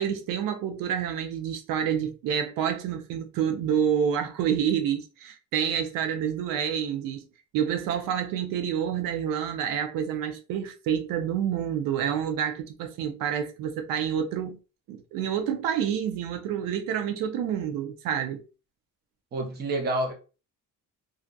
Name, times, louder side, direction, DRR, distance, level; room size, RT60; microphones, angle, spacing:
voice 1, 0.0-7.2 7.5-14.6 14.9-18.4, right 8 dB, 80° right, 0.5 m, -28 dB
voice 2, 19.3-20.1, right 1 dB, 30° right, 0.6 m, -28 dB
2.5 x 2.4 x 2.2 m
cardioid pair, 160°, 33 cm